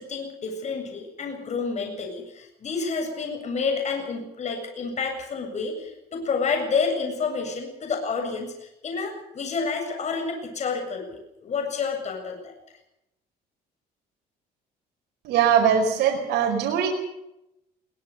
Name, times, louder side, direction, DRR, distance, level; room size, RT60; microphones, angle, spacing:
voice 1, 0.0-12.5, left 5 dB, 45° left, 4 dB, 7.6 m, -29 dB
voice 2, 15.2-16.9, right 8 dB, 80° right, 1 dB, 4.8 m, -21 dB
22.5 x 19.5 x 6.9 m, 0.85 s
cardioid pair, 110°, 17 cm